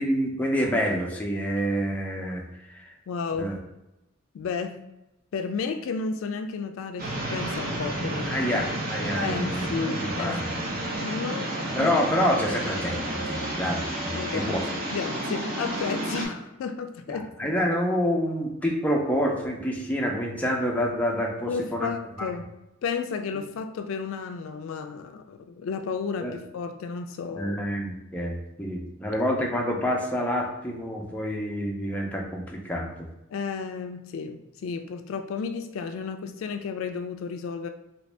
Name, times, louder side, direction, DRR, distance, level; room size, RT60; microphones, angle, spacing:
voice 1, 0.0-2.4 2.7-2.9 3.4-3.6 8.3-10.6 11.7-14.6 17.1-21.9 26.2-26.3 27.4-33.1, equal, 5° left, -1 dB, 0.5 m, -27 dB
voice 2, 3.1-3.6 4.3-4.8 5.3-8.6 9.1-10.7 11.0-12.2 14.1-14.6 14.9-17.5 21.4-22.5 22.8-27.6 33.3-37.7, left 5 dB, 70° left, 6 dB, 0.3 m, -33 dB
sound 1, 7.0-16.3, right 1 dB, 45° right, 0.7 m, -31 dB
2.9 x 2.6 x 3.2 m, 0.92 s
head